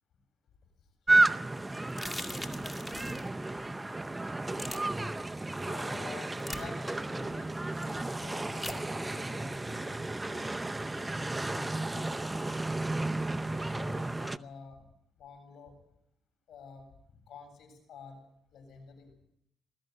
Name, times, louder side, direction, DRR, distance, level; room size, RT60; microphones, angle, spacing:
sound 1, 1.1-14.4, right 2 dB, 15° right, 0.7 m, -32 dB
sound 2, 1.9-3.3 4.6-4.8 6.4-6.6 8.6-8.8, left 2 dB, 15° left, 2.2 m, -40 dB
voice 1, 2.0-3.2 4.5-4.7 5.6-10.5 11.0-12.1 13.5-14.8 15.2-15.7 16.5-16.9 17.3-18.2 18.5-19.1, left 5 dB, 70° left, 6 dB, 7.9 m, -50 dB
21.0 x 14.0 x 9.4 m, 0.76 s
cardioid pair, 90°, 0 cm